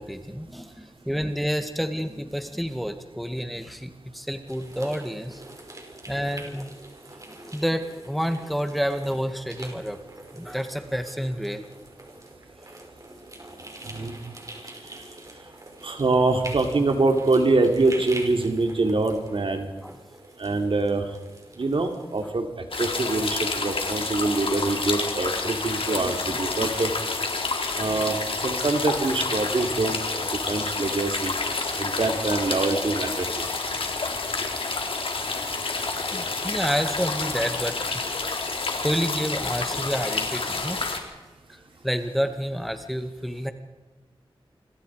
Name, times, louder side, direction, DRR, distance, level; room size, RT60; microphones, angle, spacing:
voice 1, 0.0-5.4 6.1-6.7 7.3-10.0 10.3-11.6 19.8-20.0 22.2-22.3 26.0-26.8 35.6-35.8 36.0-38.1 38.8-41.0 41.5-43.5, equal, ahead, 7 dB, 2.0 m, -29 dB
sound 1, 4.5-22.3, right 1 dB, 35° right, 5.6 m, -44 dB
voice 2, 13.8-14.1 15.8-19.7 20.4-21.0 21.6-22.5 22.8-26.9 27.8-28.2 28.4-31.3 31.8-33.4, right 3 dB, 65° right, 5 dB, 3.4 m, -24 dB
sound 2, 22.7-41.0, left 3 dB, 70° left, 3.8 m, -29 dB
27.0 x 26.5 x 5.0 m, 1.1 s
wide cardioid pair, 85°, 10 cm